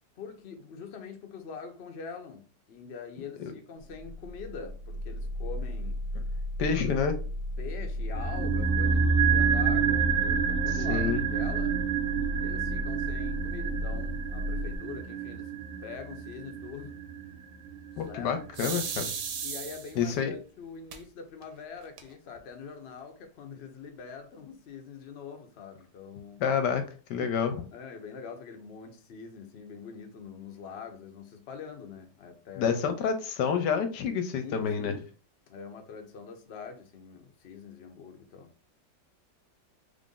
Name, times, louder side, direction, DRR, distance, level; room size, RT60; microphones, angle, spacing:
voice 1, 0.2-6.0 7.6-11.8 12.4-15.5 15.8-16.9 18.0-18.4 19.4-26.5 27.7-32.8 34.4-35.1 35.5-38.5, left 6 dB, 60° left, 0.7 m, -44 dB
sound 1, 3.9-14.8, left 1 dB, 85° right, 1.3 m, -34 dB
voice 2, 6.6-7.2 10.9-11.2 18.0-19.1 20.0-20.3 26.4-27.6 32.6-35.0, left 6 dB, 75° left, 1.2 m, -28 dB
sound 2, 8.1-18.4 18.6-18.7, right 6 dB, 55° right, 0.8 m, -28 dB
sound 3, 18.5-20.1 20.9-21.0 21.4-21.5 21.8-22.4, right 7 dB, 70° right, 1.1 m, -35 dB
3.5 x 2.5 x 3.7 m
omnidirectional pair, 1.9 m